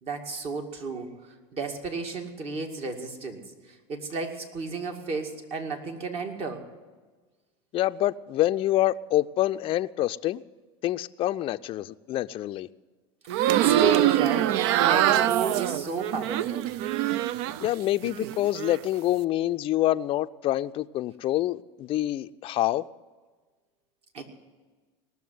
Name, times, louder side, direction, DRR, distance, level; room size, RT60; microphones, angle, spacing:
voice 1, 0.0-1.1 1.5-3.4 3.9-6.6 13.5-16.7 24.1-24.2, right 4 dB, 45° right, 2.2 m, -32 dB
voice 2, 7.7-10.4 10.8-12.7 17.6-22.9, left 14 dB, 40° left, 0.4 m, -26 dB
sound 1, 13.3-17.7 18.0-18.8, right 13 dB, 70° right, 0.5 m, -24 dB
19.0 x 7.0 x 9.4 m
supercardioid pair, 105°, 14 cm